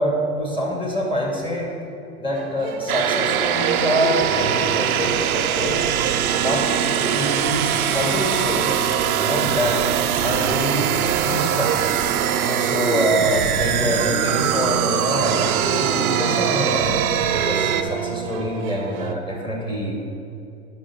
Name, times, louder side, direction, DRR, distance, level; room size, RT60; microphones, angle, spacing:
voice 1, 0.0-1.7 2.2-5.9 6.3-9.8 10.2-11.9 12.4-17.0 17.4-20.1, equal, 10° left, -2 dB, 2.4 m, -25 dB
sound 1, 2.3-19.1, right 8 dB, 50° right, 1.1 m, -30 dB
sound 2, 2.9-17.8, right 9 dB, 70° right, 0.9 m, -22 dB
11.0 x 5.9 x 7.9 m, 2.7 s
hypercardioid pair, 105°, 45 cm